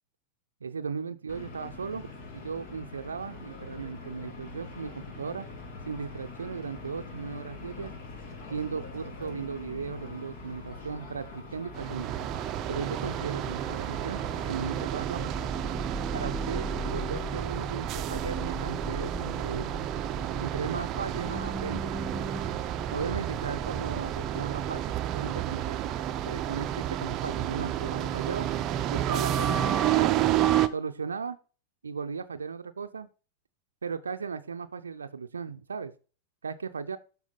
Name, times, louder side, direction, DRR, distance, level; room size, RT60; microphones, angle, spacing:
voice 1, 0.6-2.1 2.3-5.5 5.8-7.9 8.5-12.1 12.7-15.3 16.1-19.8 20.4-21.9 22.9-28.5 28.9-30.2 30.7-31.4 31.8-33.1 33.8-35.9 36.4-37.0, right 5 dB, 75° right, 9 dB, 0.6 m, -36 dB
sound 1, 1.3-14.8, left 3 dB, 50° left, 2.2 m, -44 dB
sound 2, 11.8-30.7, right 11 dB, 35° right, 0.6 m, -30 dB
sound 3, 14.7-25.2, equal, 5° left, 0.9 m, -39 dB
12.0 x 4.6 x 4.0 m, 0.36 s
figure-of-eight pair, 90°, 0 cm